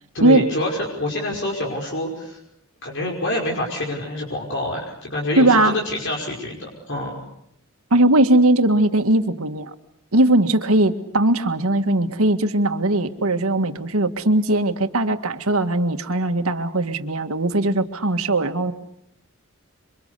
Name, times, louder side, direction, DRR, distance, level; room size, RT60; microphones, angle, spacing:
voice 1, 0.1-2.4 2.8-7.2, left 1 dB, 60° left, -1 dB, 5.6 m, -26 dB
voice 2, 5.4-5.8 7.9-9.7 10.1-18.7, right 1 dB, 75° right, 8 dB, 1.9 m, -19 dB
28.5 x 24.5 x 6.8 m, 0.77 s
head